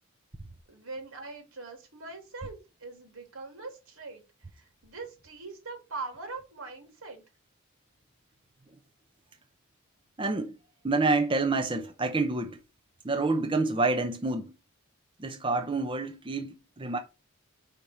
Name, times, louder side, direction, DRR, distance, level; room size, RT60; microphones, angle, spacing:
voice 1, 0.7-4.2 4.5-7.2, right 3 dB, 85° right, 2.6 m, -42 dB
voice 2, 10.2-10.6 10.8-12.6 13.0-14.5 15.2-17.0, right 3 dB, 25° right, 0.6 m, -28 dB
5.1 x 4.6 x 5.5 m
head